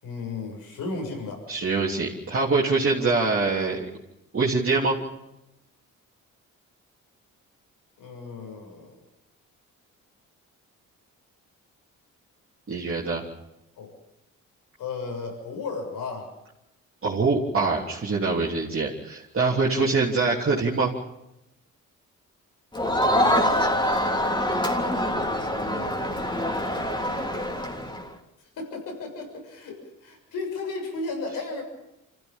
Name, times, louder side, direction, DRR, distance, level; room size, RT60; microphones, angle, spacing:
voice 1, 0.0-1.4 8.0-9.0 13.8-13.9 14.8-16.3 19.8-20.0 22.9-24.2 28.4-31.6, left 3 dB, 80° left, 3 dB, 6.9 m, -35 dB
voice 2, 1.5-3.8 4.3-5.0 12.7-13.2 17.0-20.9, right 3 dB, 40° right, -5 dB, 3.3 m, -24 dB
Crowd, 22.7-28.1, equal, 15° left, 3.3 m, -25 dB
26.0 x 15.0 x 7.3 m, 0.88 s
cardioid pair, 70°, 33 cm